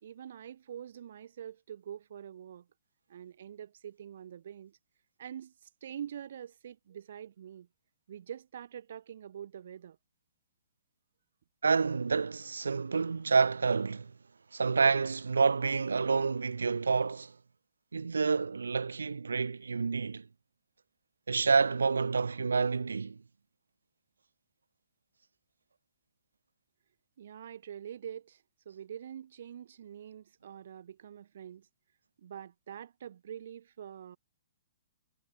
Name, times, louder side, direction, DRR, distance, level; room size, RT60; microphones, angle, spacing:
voice 1, 0.0-2.7 3.1-4.8 5.2-5.5 5.8-7.7 8.1-10.0 27.2-31.7 32.2-34.2, right 9 dB, 60° right, 2.5 m, -45 dB
voice 2, 11.6-14.1 14.5-17.4 17.9-20.3 21.3-23.2, right 4 dB, 80° right, 0.8 m, -28 dB
hypercardioid pair, 125°, 0 cm